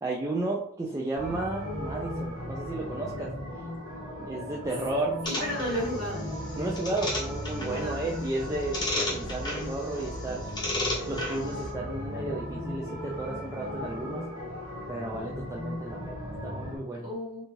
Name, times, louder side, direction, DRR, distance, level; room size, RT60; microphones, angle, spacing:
voice 1, 0.0-3.3 4.2-5.2 6.6-10.5 11.1-14.2 14.9-17.1, right 2 dB, 15° right, -3 dB, 0.3 m, -33 dB
sound 1, 1.1-16.8, left 1 dB, 70° right, 1.0 m, -37 dB
voice 2, 5.2-6.3 7.7-8.4 17.0-17.4, equal, 40° right, -4 dB, 1.1 m, -34 dB
sound 2, 5.3-11.7, left 1 dB, 20° left, 0.8 m, -35 dB
2.7 x 2.3 x 3.0 m, 0.70 s
head